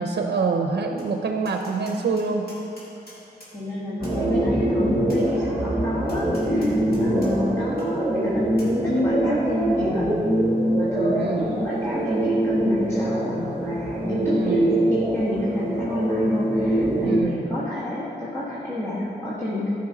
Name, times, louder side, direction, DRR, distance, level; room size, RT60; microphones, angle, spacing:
voice 1, 0.0-2.5 11.1-11.5 14.3-14.8 17.0-17.5, right 4 dB, 75° right, 3 dB, 0.6 m, -26 dB
Tap, 1.0-1.1 1.4-3.5 4.0-4.2 5.1-5.2 6.1-7.3 7.8-7.9 8.6-8.7, left 1 dB, 60° left, 2.3 m, -47 dB
voice 2, 3.5-8.5 8.8-10.2 10.7-19.7, left 1 dB, 15° left, -8 dB, 1.3 m, -29 dB
sound 1, 4.0-17.2, right 1 dB, 15° right, 1.3 m, -23 dB
14.5 x 5.4 x 3.9 m, 2.7 s
wide cardioid pair, 160°, 17 cm